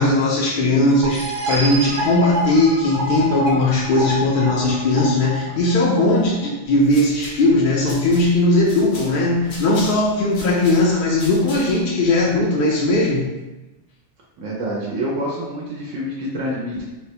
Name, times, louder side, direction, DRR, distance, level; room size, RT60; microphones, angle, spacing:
voice 1, 0.0-13.3, left 2 dB, 65° left, -4 dB, 0.5 m, -18 dB
sound 1, 1.0-6.5, equal, 65° right, 0.4 m, -27 dB
sound 2, 6.6-11.9, left 1 dB, 80° left, 1.1 m, -40 dB
voice 2, 14.4-16.8, equal, 80° right, -4 dB, 1.0 m, -27 dB
3.5 x 2.1 x 2.7 m, 1.0 s
omnidirectional pair, 1.3 m